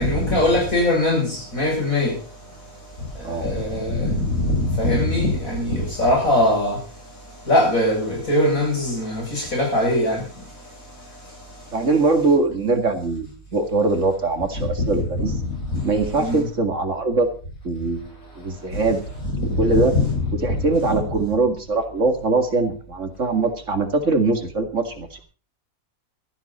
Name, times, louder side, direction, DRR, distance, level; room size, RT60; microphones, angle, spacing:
voice 1, 0.0-2.1 3.4-6.8 7.5-10.2 15.3-15.4 15.7-15.8 16.2-16.5 19.3-20.2, left 1 dB, 75° left, 8.7 m, -21 dB
voice 2, 11.7-15.3 15.8-17.3 17.6-19.0 19.6-19.9 20.4-25.2, right 3 dB, 60° right, 2.4 m, -22 dB
17.5 x 13.5 x 4.3 m
omnidirectional pair, 1.5 m